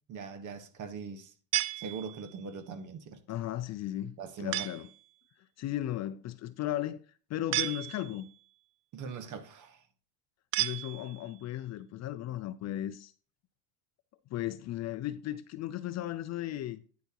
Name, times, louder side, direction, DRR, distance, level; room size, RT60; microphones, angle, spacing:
voice 1, 0.1-1.3 1.8-3.2 4.2-4.6 8.9-9.8, right 5 dB, 40° right, 1.4 m, -41 dB
sound 1, 1.5-2.5 4.5-5.0 7.5-8.4 10.5-11.4, right 17 dB, 60° right, 0.7 m, -34 dB
voice 2, 3.3-4.9 5.6-7.0 7.3-8.2 10.6-13.1 14.3-16.8, left 13 dB, 35° left, 0.5 m, -36 dB
9.4 x 8.3 x 2.9 m
supercardioid pair, 115°, 45 cm